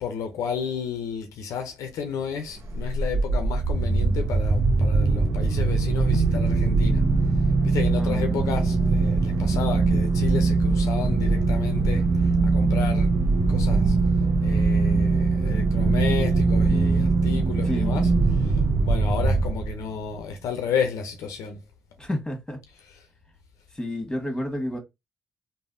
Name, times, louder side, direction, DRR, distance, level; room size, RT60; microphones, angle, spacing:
voice 1, 0.0-7.1 7.6-14.0 14.4-18.1 18.4-21.6, left 6 dB, 75° left, 0.5 m, -32 dB
sound 1, 2.6-20.0, right 3 dB, 60° right, 0.5 m, -22 dB
voice 2, 8.0-8.5 17.6-17.9 22.0-22.6 23.7-24.8, left 1 dB, 10° left, 1.2 m, -31 dB
3.3 x 2.0 x 2.5 m
hypercardioid pair, 45°, 6 cm